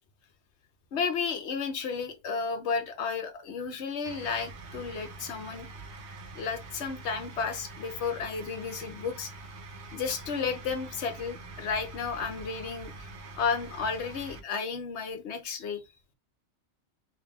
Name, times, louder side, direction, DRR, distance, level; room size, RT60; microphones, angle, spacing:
voice 1, 0.9-5.7 6.3-9.3 9.9-13.1 13.4-15.8, left 5 dB, 70° left, 1.0 m, -33 dB
sound 1, 4.1-14.4, right 3 dB, 70° right, 1.0 m, -45 dB
3.0 x 2.8 x 3.5 m
omnidirectional pair, 1.2 m